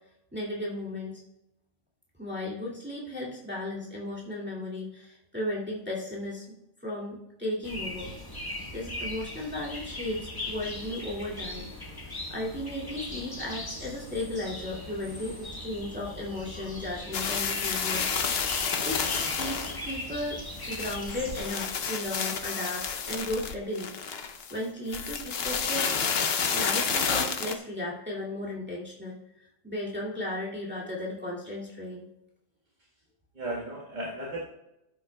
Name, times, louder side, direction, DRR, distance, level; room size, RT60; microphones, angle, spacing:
voice 1, 0.3-1.2 2.2-6.4 6.8-11.7 12.3-18.1 18.8-19.0 19.3-20.4 20.7-24.0 24.5-25.9 26.5-29.2 29.6-32.1, left 1 dB, 5° right, -6 dB, 2.3 m, -35 dB
sound 1, 7.6-21.5, left 1 dB, 15° left, 1.3 m, -39 dB
voice 2, 14.8-15.3 33.3-34.4, right 1 dB, 30° right, -3 dB, 1.6 m, -36 dB
sound 2, 17.1-20.0 20.5-24.5 24.9-27.5, left 6 dB, 50° left, 0.8 m, -30 dB
15.5 x 8.3 x 2.3 m, 0.90 s
omnidirectional pair, 1.8 m